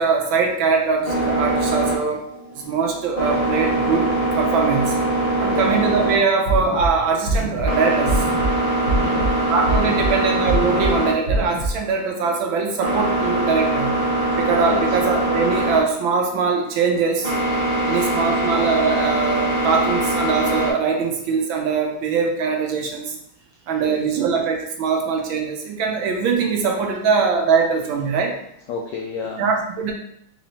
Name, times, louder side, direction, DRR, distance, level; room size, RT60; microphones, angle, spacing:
voice 1, 0.0-2.2 2.6-4.1 4.4-5.0 5.4-8.2 9.5-14.0 14.4-17.3 17.9-23.1 23.7-28.3 29.4-29.9, right 5 dB, 70° right, 2 dB, 1.3 m, -22 dB
sound 1, 1.0-20.7, right 1 dB, 55° left, 0.4 m, -23 dB
voice 2, 5.5-5.8 9.0-9.3 14.6-15.0 17.9-18.5 23.8-24.0 28.7-29.5, left 5 dB, 80° left, 0 dB, 1.0 m, -31 dB
sound 2, 6.4-6.9 7.3-7.7 8.1-8.5 8.9-9.3 9.7-10.1 10.5-10.9 11.3-11.7, right 2 dB, 50° right, 0.8 m, -23 dB
4.2 x 4.0 x 2.8 m, 0.72 s
omnidirectional pair, 2.4 m